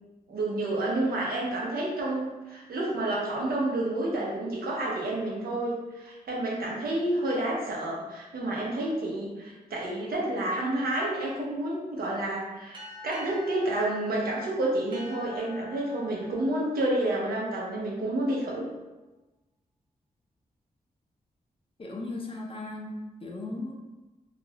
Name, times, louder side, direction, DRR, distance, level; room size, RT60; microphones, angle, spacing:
voice 1, 0.3-12.8 13.0-18.6, right 1 dB, 80° right, -4 dB, 0.7 m, -29 dB
sound 1, 12.7-17.8, left 2 dB, 30° right, 0.6 m, -48 dB
voice 2, 21.8-23.7, left 2 dB, 35° left, 0 dB, 0.5 m, -37 dB
2.4 x 2.0 x 2.7 m, 1.1 s
cardioid pair, 65°, 15 cm